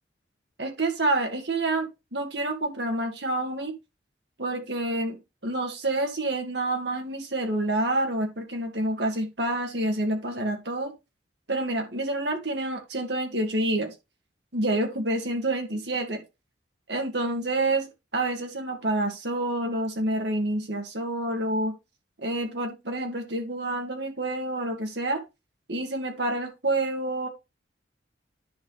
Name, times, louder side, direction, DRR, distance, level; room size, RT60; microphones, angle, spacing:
voice 1, 0.6-3.7 4.4-10.9 11.5-13.9 14.5-16.2 16.9-21.7 22.2-25.2 25.7-27.3, right 2 dB, 65° right, 2.3 m, -28 dB
10.0 x 4.6 x 4.1 m
head